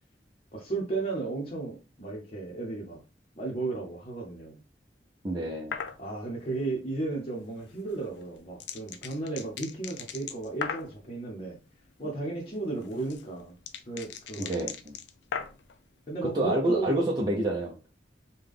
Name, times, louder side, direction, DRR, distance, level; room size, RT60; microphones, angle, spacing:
voice 1, 0.5-3.0 3.3-4.6 6.0-11.6 12.0-13.6 13.9-14.7 16.1-17.0, right 3 dB, 35° left, -3 dB, 0.9 m, -34 dB
voice 2, 5.2-5.8 14.4-14.9 16.2-17.9, right 1 dB, 25° right, -2 dB, 0.6 m, -28 dB
sound 1, 5.7-6.0 7.9-11.0 12.5-15.7, left 7 dB, 75° left, 0.4 m, -38 dB
3.4 x 2.3 x 3.6 m, 0.31 s
head